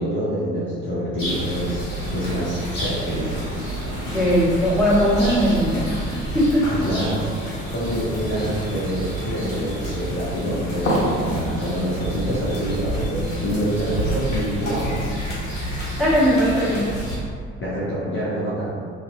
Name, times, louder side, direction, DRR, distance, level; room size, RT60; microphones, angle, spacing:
voice 1, 0.0-1.9 2.1-3.5 6.7-15.1 17.6-18.8, equal, 30° left, -9 dB, 0.6 m, -26 dB
sound 1, 1.2-17.2, right 1 dB, 85° left, 0.6 m, -28 dB
voice 2, 4.1-5.9 6.3-6.7 16.0-16.8, equal, ahead, -10 dB, 0.9 m, -19 dB
2.5 x 2.0 x 2.5 m, 2.1 s
figure-of-eight pair, 50°, 38 cm